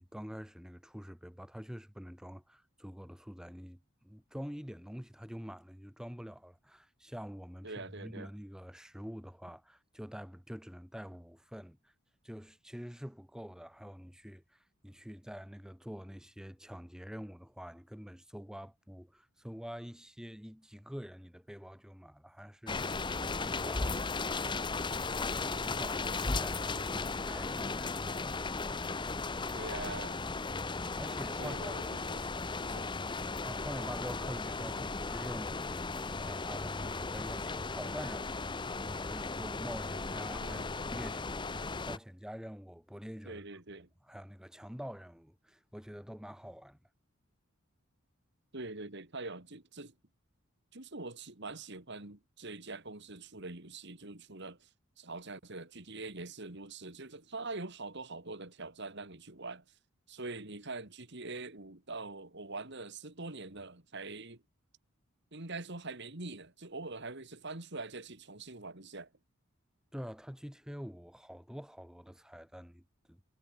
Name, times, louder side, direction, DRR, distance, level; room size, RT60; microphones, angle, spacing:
voice 1, 0.0-11.9 12.2-24.6 25.1-28.5 31.0-31.8 33.4-43.4 44.1-46.8 69.9-72.8 73.1-73.2, equal, 5° right, 1.4 m, -46 dB
voice 2, 7.6-8.3 26.7-27.2 29.5-30.2 31.4-32.9 40.4-40.7 43.3-43.9 48.5-49.9 50.7-54.7 55.0-59.6 60.1-64.4 65.3-69.1, right 3 dB, 55° right, 2.8 m, -44 dB
sound 1, 22.7-42.0, left 3 dB, 20° left, 0.8 m, -36 dB
head